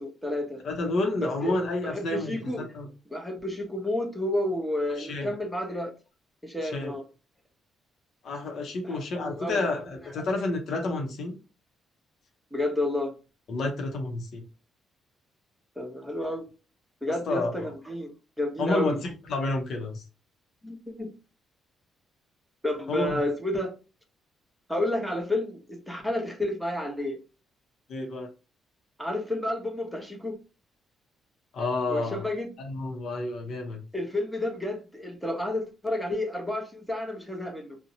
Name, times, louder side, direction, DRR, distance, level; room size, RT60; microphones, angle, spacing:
voice 1, 0.0-0.6 1.2-1.5 1.8-2.7 3.1-5.9 6.4-7.0 8.8-9.7 12.5-13.1 15.8-16.5 17.0-18.1 18.4-19.0 20.6-21.1 22.6-23.7 24.7-27.2 29.0-30.4 31.9-32.6 33.9-37.8, left 1 dB, ahead, 0.8 m, -30 dB
voice 2, 0.6-2.9 5.0-5.3 6.6-6.9 8.2-11.3 13.5-14.4 17.1-17.5 18.6-20.0 22.9-23.2 27.9-28.3 31.5-32.3 32.6-33.8, left 2 dB, 65° left, 0.7 m, -30 dB
2.6 x 2.1 x 2.7 m
cardioid pair, 90°, 0 cm